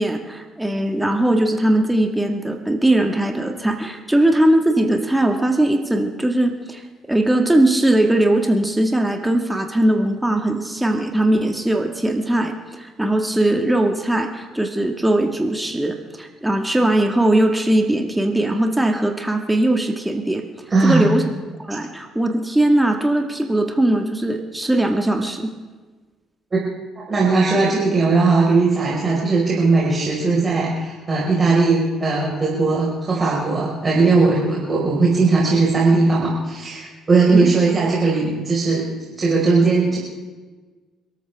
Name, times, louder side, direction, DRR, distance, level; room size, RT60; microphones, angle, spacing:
voice 1, 0.0-20.4 20.8-21.2 21.6-25.5 37.3-37.6, right 1 dB, 10° right, 4 dB, 1.9 m, -20 dB
voice 2, 20.7-21.1 26.5-26.6 27.0-38.9 39.2-40.0, right 3 dB, 30° right, -4 dB, 5.0 m, -18 dB
29.5 x 13.5 x 3.6 m, 1.3 s
figure-of-eight pair, 50°, 0 cm